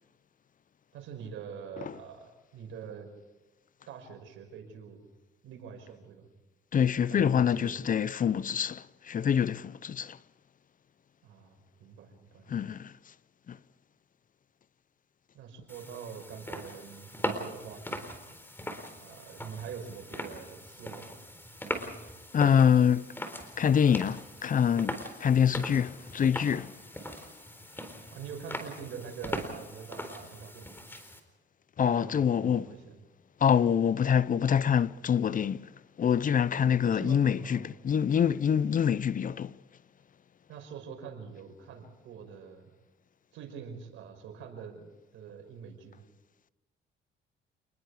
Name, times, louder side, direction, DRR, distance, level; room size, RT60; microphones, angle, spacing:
voice 1, 0.9-3.1 3.9-5.1 5.4-6.3 7.1-7.9 11.2-12.5 15.3-18.1 19.0-21.2 28.1-30.8 31.8-33.0 36.8-37.7 40.5-42.7 43.3-46.0, right 7 dB, 85° right, 5.3 m, -45 dB
voice 2, 6.7-10.2 12.5-13.0 13.5-13.6 22.3-23.1 23.6-26.8 31.8-32.7 33.4-35.7 36.0-39.6, left 8 dB, 40° left, 0.6 m, -25 dB
sound 1, 15.7-31.2, equal, 10° left, 4.1 m, -40 dB
29.0 x 20.5 x 4.9 m
cardioid pair, 90°, 20 cm